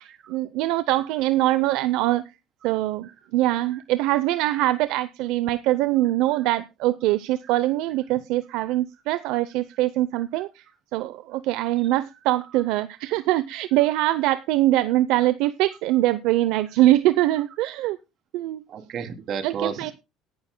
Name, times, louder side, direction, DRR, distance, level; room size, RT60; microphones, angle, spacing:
voice 1, 0.0-2.2 2.6-10.6 10.9-18.0 18.3-18.6 19.4-19.9, right 15 dB, 75° right, 0.6 m, -23 dB
voice 2, 18.7-19.9, right 6 dB, 55° right, 2.8 m, -32 dB
18.5 x 11.0 x 2.2 m
supercardioid pair, 105°, 0 cm